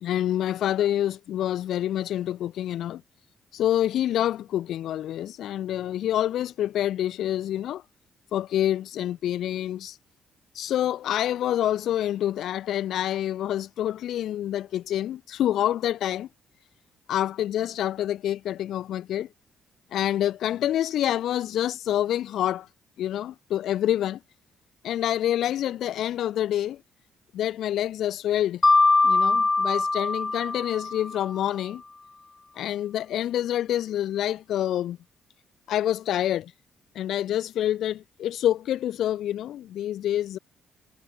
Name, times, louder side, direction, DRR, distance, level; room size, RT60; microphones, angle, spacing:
voice 1, 0.0-3.0 3.5-7.8 8.3-10.0 10.5-16.3 17.1-19.3 19.9-22.7 23.0-24.2 24.8-26.8 27.3-28.6 29.0-31.8 32.6-35.0 35.7-36.5 36.9-40.4, left 12 dB, 75° left, 1.6 m, -27 dB
Mallet percussion, 28.6-31.4, left 3 dB, 20° left, 3.5 m, -22 dB
cardioid pair, 90°, 0 cm